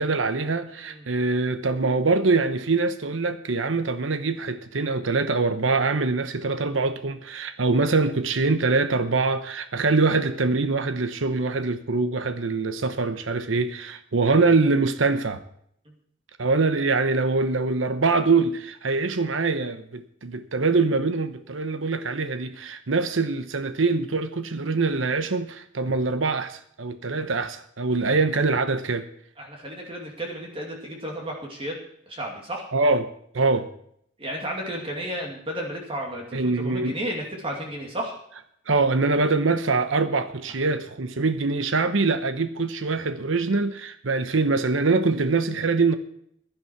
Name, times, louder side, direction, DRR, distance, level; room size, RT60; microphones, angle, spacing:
voice 1, 0.0-15.4 16.4-29.1 32.7-33.7 36.3-36.9 38.7-46.0, right 3 dB, 80° right, 11 dB, 0.9 m, -24 dB
voice 2, 0.7-1.1 15.9-16.0 29.4-31.8 32.1-32.7 34.2-38.1, right 1 dB, 30° right, 0 dB, 2.5 m, -33 dB
15.5 x 11.0 x 4.6 m, 0.69 s
head